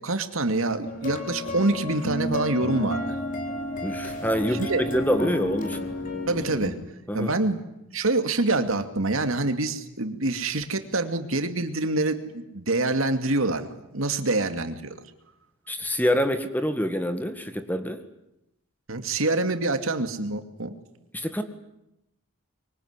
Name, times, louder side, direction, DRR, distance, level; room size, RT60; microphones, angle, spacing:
voice 1, 0.0-3.2 4.6-4.8 6.3-6.8 7.1-7.6 7.9-15.0 18.9-20.7, right 2 dB, 80° right, 7 dB, 2.5 m, -26 dB
sound 1, 0.9-6.7, left 1 dB, 40° left, 4.2 m, -31 dB
voice 2, 3.8-5.9 7.1-7.3 15.7-18.0 21.1-21.4, equal, 10° left, 8 dB, 1.9 m, -26 dB
25.0 x 24.0 x 9.8 m, 0.85 s
head